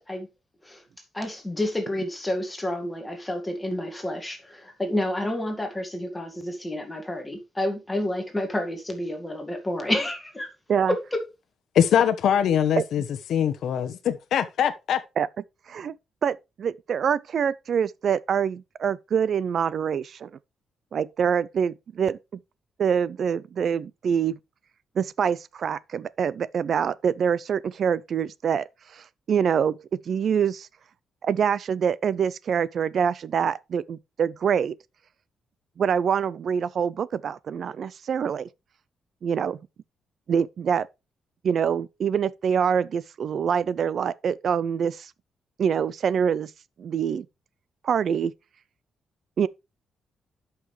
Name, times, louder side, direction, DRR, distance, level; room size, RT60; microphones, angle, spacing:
voice 1, 1.1-10.5 10.9-11.2, left 1 dB, 10° left, 1.8 m, -29 dB
voice 2, 11.7-13.0 13.3-15.0, left 9 dB, 70° left, 0.9 m, -22 dB
voice 3, 15.7-20.3 20.9-22.2 22.8-24.4 25.0-28.7 28.9-29.8 30.1-30.7 31.2-34.8 35.8-38.5 39.2-39.6 40.3-40.9 41.4-45.1 45.6-46.5 46.8-47.3 47.8-48.3 49.4-49.5, right 7 dB, 50° right, 0.4 m, -25 dB
11.0 x 5.8 x 3.2 m
cardioid pair, 145°, 0 cm